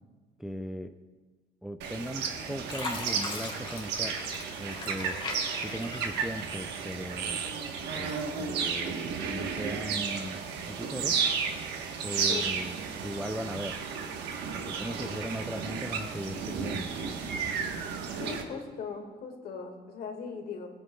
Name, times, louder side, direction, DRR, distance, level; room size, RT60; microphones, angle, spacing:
voice 1, 0.4-0.9 1.6-4.2 4.6-5.2 5.6-7.4 8.0-11.2 12.0-13.8 14.5-16.9, equal, 5° right, 7 dB, 0.4 m, -38 dB
sound 1, 1.8-18.4, right 6 dB, 85° right, 1.2 m, -33 dB
Fill (with liquid), 1.9-2.3 2.7-7.1 7.5-8.3 8.9-9.0, left 3 dB, 30° left, 1.9 m, -40 dB
voice 2, 18.2-20.7, left 5 dB, 65° left, 4 dB, 1.8 m, -39 dB
19.0 x 8.9 x 2.3 m, 1.4 s
cardioid pair, 110°, 17 cm